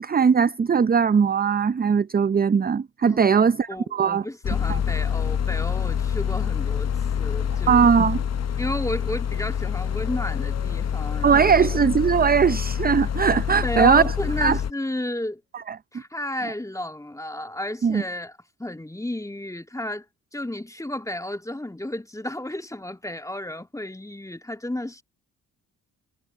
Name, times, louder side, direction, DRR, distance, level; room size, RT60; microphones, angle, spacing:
voice 1, 0.0-4.2 4.7-4.8 7.7-8.2 11.2-14.6 15.7-15.8 17.8-18.0, right 6 dB, 25° right, 0.6 m, -20 dB
voice 2, 3.0-6.9 7.2-7.9 8.6-11.7 13.6-15.4 15.9-18.3 18.6-20.1 20.3-25.0, left 1 dB, 10° left, 2.1 m, -32 dB
sound 1, 4.4-14.7, left 8 dB, 40° left, 1.0 m, -26 dB
sound 2, 9.7-13.8, left 17 dB, 75° left, 5.4 m, -47 dB
hypercardioid pair, 45°, 41 cm